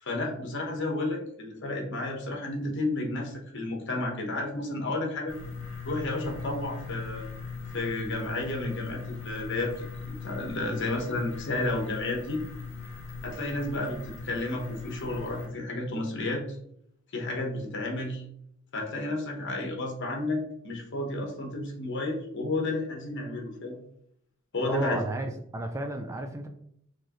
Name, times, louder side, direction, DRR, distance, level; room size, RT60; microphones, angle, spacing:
voice 1, 0.0-5.3 5.8-7.2 7.7-12.4 13.2-16.4 17.1-18.2 18.7-23.8 24.5-25.0, left 2 dB, 60° left, 2 dB, 1.0 m, -32 dB
sound 1, 5.3-15.5, left 4 dB, 30° left, 1.3 m, -40 dB
voice 2, 24.7-26.5, right 1 dB, 15° right, 4 dB, 0.3 m, -32 dB
4.6 x 3.1 x 2.9 m, 0.71 s
head